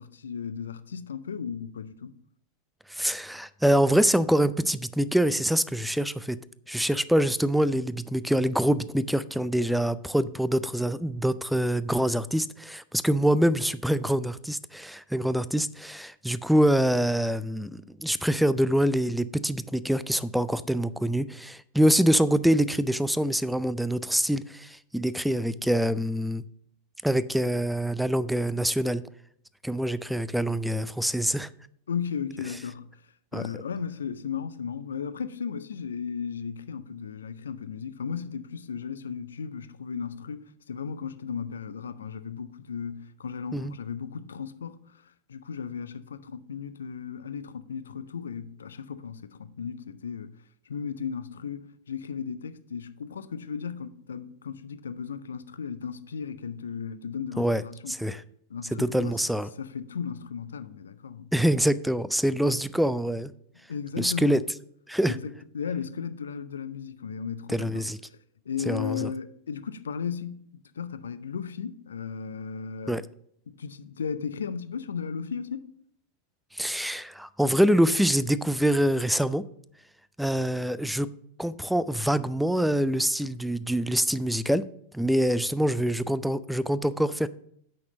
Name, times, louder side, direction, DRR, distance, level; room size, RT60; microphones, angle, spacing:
voice 1, 0.0-2.1 31.9-32.8 33.3-50.4 50.7-58.0 58.5-61.3 63.7-64.4 65.1-67.8 68.5-70.5 70.8-73.0 73.5-75.7, left 6 dB, 70° left, 0.5 m, -35 dB
voice 2, 2.9-6.4 6.7-26.4 27.0-29.0 29.6-31.5 33.3-33.5 43.5-43.7 57.4-57.6 57.9-58.2 58.7-59.5 61.3-63.3 64.0-64.4 64.9-65.2 67.5-68.0 68.7-69.1 72.9-73.0 76.5-79.4 80.2-81.1 81.4-84.7 84.9-87.3, equal, ahead, 0.4 m, -25 dB
8.5 x 6.0 x 5.0 m
figure-of-eight pair, 90°, 0 cm